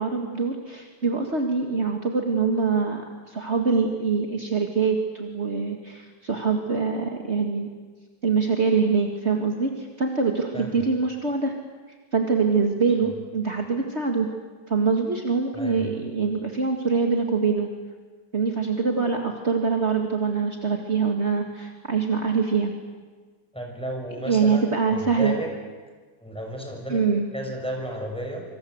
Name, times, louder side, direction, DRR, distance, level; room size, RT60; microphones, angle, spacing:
voice 1, 0.0-7.7 8.2-11.5 12.1-14.3 14.7-17.7 18.3-22.7 24.2-25.3 26.9-27.3, right 5 dB, 45° right, 3 dB, 2.3 m, -24 dB
voice 2, 15.5-15.9 23.5-25.5 26.2-27.0 27.3-28.4, equal, 5° left, 1 dB, 6.4 m, -33 dB
27.0 x 25.5 x 8.1 m, 1.4 s
omnidirectional pair, 1.7 m